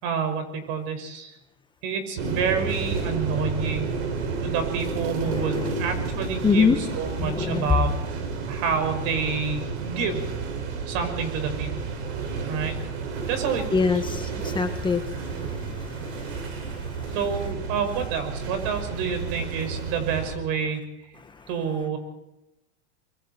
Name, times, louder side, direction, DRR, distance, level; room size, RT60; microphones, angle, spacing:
voice 1, 0.0-1.4 1.8-3.9 4.4-7.9 8.5-10.2 10.9-11.8 12.5-12.8 13.3-13.8 17.1-20.9 21.5-22.0, right 6 dB, 55° right, 7 dB, 5.8 m, -28 dB
sound 1, 2.2-20.4, right 5 dB, 80° right, 6.1 m, -31 dB
voice 2, 5.2-5.8 6.4-6.8 7.2-7.8 13.7-17.1 21.2-21.5, left 5 dB, 15° left, 5 dB, 1.7 m, -26 dB
25.0 x 23.5 x 4.5 m, 0.91 s
supercardioid pair, 130°, 33 cm